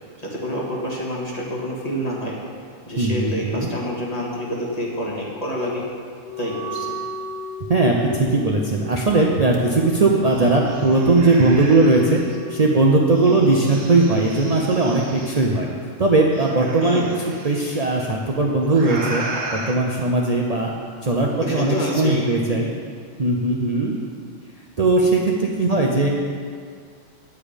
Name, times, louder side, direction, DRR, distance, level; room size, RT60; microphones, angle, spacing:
voice 1, 0.2-2.4 2.9-5.8 6.4-7.0 13.2-13.8 16.8-17.2 21.4-22.2, equal, 30° left, -5 dB, 1.9 m, -28 dB
voice 2, 3.0-3.7 7.7-12.2 12.5-15.7 16.0-20.7 21.0-22.7 23.2-24.0 24.8-26.1, right 2 dB, 35° right, -2 dB, 0.7 m, -19 dB
Wind instrument woodwind instrument, 6.2-13.3, equal, 15° left, 1.0 m, -36 dB
sound 1, 9.5-9.6 10.0-12.4 13.1-15.5 16.3-17.9 18.7-19.7, right 2 dB, 65° right, 1.3 m, -35 dB
9.3 x 8.4 x 5.1 m, 2.1 s
omnidirectional pair, 1.3 m